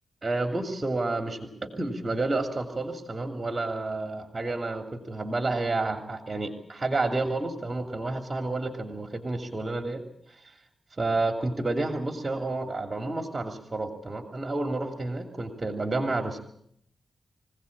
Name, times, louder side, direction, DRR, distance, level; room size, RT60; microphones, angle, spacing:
voice 1, 0.2-10.0 10.3-10.6 11.0-16.4, right 2 dB, 35° right, 4 dB, 2.9 m, -30 dB
25.5 x 16.5 x 8.6 m, 0.69 s
cardioid pair, 60°, 0 cm